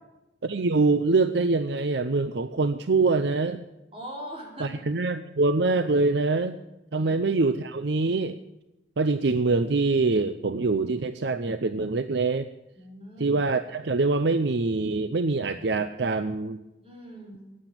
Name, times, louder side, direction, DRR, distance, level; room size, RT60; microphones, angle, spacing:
voice 1, 0.4-3.6 4.6-6.6 6.9-8.4 9.0-12.5 13.2-16.6, right 3 dB, 65° right, 11 dB, 0.6 m, -24 dB
voice 2, 3.9-4.8 6.9-7.2 12.8-13.4 16.8-17.5, equal, 30° right, 0 dB, 4.5 m, -41 dB
15.0 x 9.6 x 9.0 m, 0.98 s
head